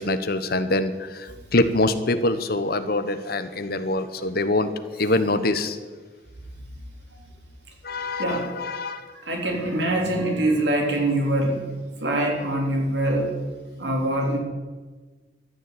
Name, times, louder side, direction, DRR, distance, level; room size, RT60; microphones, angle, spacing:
voice 1, 0.0-5.8 7.8-9.1, left 2 dB, 55° left, 10 dB, 1.1 m, -24 dB
voice 2, 8.2-8.5 9.1-11.7 12.0-13.3 13.8-14.4, right 1 dB, 65° right, 1 dB, 3.4 m, -24 dB
14.0 x 10.5 x 8.6 m, 1.4 s
head